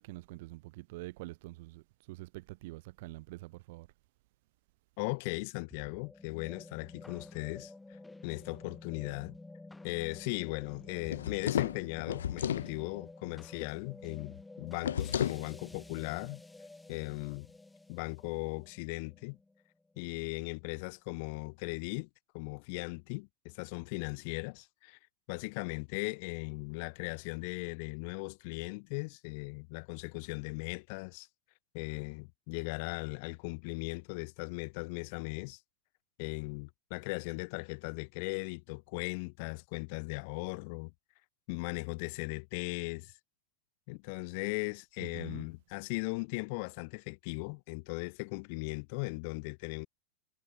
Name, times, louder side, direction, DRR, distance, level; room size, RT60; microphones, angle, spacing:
voice 1, 0.0-3.9 45.0-45.5, right 21 dB, 50° right, 0.4 m, -46 dB
voice 2, 5.0-9.4 9.8-16.4 16.9-17.5 17.9-19.4 20.0-22.1 22.3-25.0 25.3-31.3 31.7-35.6 36.2-40.9 41.5-43.1 43.9-49.9, left 31 dB, 45° left, 1.0 m, -38 dB
sound 1, 5.7-20.1, left 2 dB, 5° left, 2.3 m, -51 dB
sound 2, 11.0-12.7 14.8-15.4, left 9 dB, 65° left, 0.3 m, -33 dB
figure-of-eight pair, 90°, 0 cm